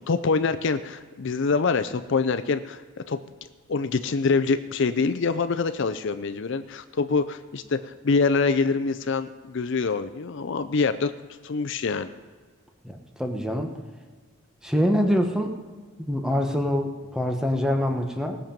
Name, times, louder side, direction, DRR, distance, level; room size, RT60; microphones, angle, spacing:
voice 1, 0.0-3.2 3.7-11.1 11.4-12.1, left 4 dB, 60° left, 10 dB, 0.5 m, -25 dB
voice 2, 12.8-13.7 14.6-15.5 16.1-18.4, equal, 5° right, 4 dB, 1.0 m, -25 dB
18.5 x 7.3 x 5.3 m, 1.5 s
head